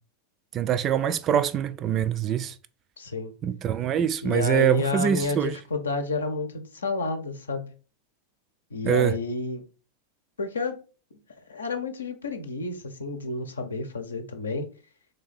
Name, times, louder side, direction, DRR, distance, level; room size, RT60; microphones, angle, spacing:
voice 1, 0.5-2.5 3.4-5.6 8.9-9.2, right 9 dB, 30° right, 0.3 m, -24 dB
voice 2, 3.0-3.3 4.2-7.7 8.7-9.6 10.4-10.8 11.5-14.7, left 3 dB, 70° left, 0.7 m, -30 dB
3.4 x 3.4 x 4.0 m
figure-of-eight pair, 90°, 0 cm